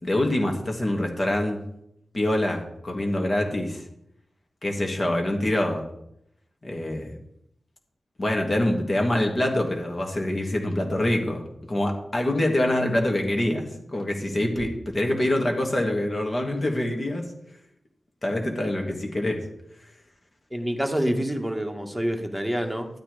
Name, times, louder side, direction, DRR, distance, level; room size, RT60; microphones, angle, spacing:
voice 1, 0.0-1.6 2.1-3.8 4.6-5.8 6.6-7.2 8.2-11.4 11.7-17.2 18.2-19.4, left 1 dB, 45° left, 2 dB, 3.0 m, -25 dB
voice 2, 20.5-22.9, equal, ahead, 4 dB, 2.0 m, -27 dB
12.0 x 9.0 x 5.2 m, 0.77 s
cardioid pair, 65°, 0 cm